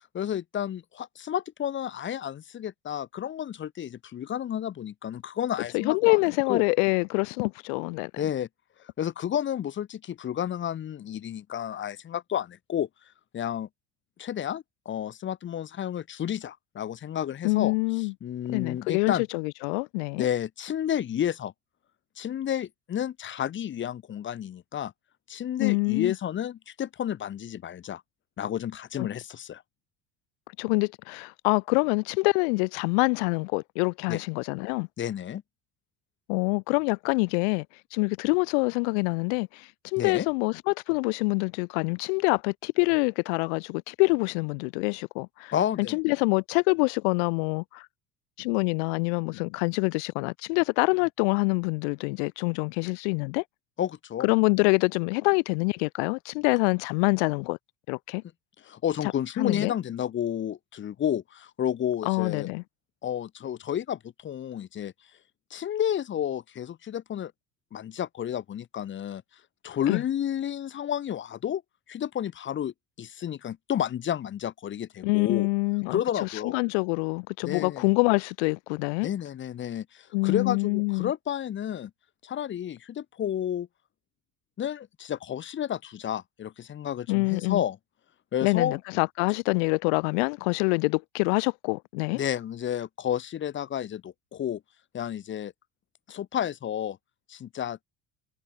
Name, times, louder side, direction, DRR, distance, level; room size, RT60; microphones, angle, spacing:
voice 1, 0.1-6.2 6.5-6.6 8.2-8.5 9.0-12.9 13.3-13.7 14.2-17.7 18.2-19.2 20.2-21.5 22.2-24.9 25.3-28.0 28.4-29.6 34.1-34.2 35.0-35.4 40.0-40.3 45.5-46.0 53.8-54.3 58.6-62.5 63.0-64.9 65.5-67.3 67.7-69.2 69.6-71.6 71.9-75.5 75.9-76.6 77.4-77.9 79.0-81.9 82.2-83.7 84.6-87.8 88.3-88.8 92.1-94.6 94.9-95.5 96.1-97.0 97.3-97.8, left 10 dB, 35° left, 3.2 m, -31 dB
voice 2, 5.7-8.2 17.4-18.1 18.5-20.3 25.6-26.1 29.0-29.1 30.6-34.9 36.3-37.7 37.9-45.5 45.8-47.9 48.4-53.4 54.2-57.6 57.9-58.2 59.4-59.7 62.1-62.6 69.9-70.0 75.0-79.1 80.1-81.1 87.1-87.6 88.4-92.2, left 34 dB, 85° left, 2.4 m, -26 dB
cardioid pair, 140°, 33 cm